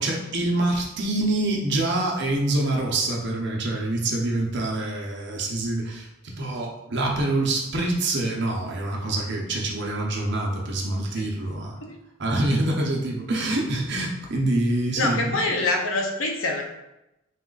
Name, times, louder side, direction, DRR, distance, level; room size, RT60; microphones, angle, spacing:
voice 1, 0.0-11.8 12.2-15.5, right 2 dB, 60° right, -1 dB, 0.8 m, -26 dB
voice 2, 15.0-16.6, left 2 dB, 90° left, 2 dB, 0.7 m, -25 dB
4.2 x 2.4 x 3.8 m, 0.92 s
head